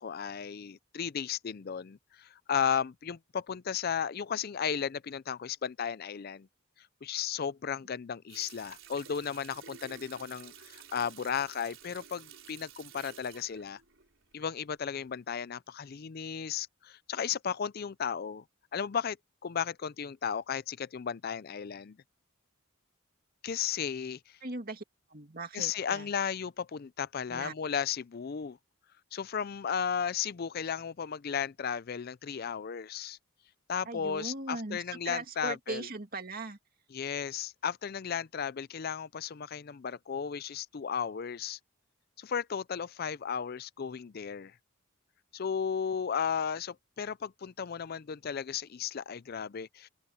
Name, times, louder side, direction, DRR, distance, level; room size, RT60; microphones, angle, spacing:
voice 1, 0.0-6.5 6.8-13.8 14.3-18.4 18.7-19.2 19.4-22.0 23.4-24.4 25.5-28.6 29.1-33.2 33.7-35.9 36.9-41.6 42.2-44.5 45.3-49.9, left 7 dB, 45° left, 0.4 m, -34 dB
Water tap faucet, 8.3-14.7 15.1-15.2, right 8 dB, 65° right, 4.6 m, -52 dB
voice 2, 24.4-24.8 25.1-26.1 27.3-27.5 33.9-36.6, right 2 dB, 45° right, 2.3 m, -39 dB
open air
head